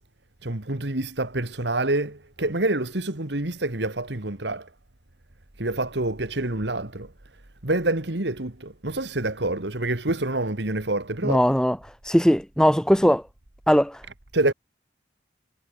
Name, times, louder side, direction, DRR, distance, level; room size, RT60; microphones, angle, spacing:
voice 1, 0.4-4.7 5.6-7.1 7.6-11.4 14.3-14.5, right 2 dB, 70° right, 2.2 m, -27 dB
voice 2, 11.2-11.8 12.0-13.2 13.7-14.0, equal, 5° left, 3.1 m, -19 dB
head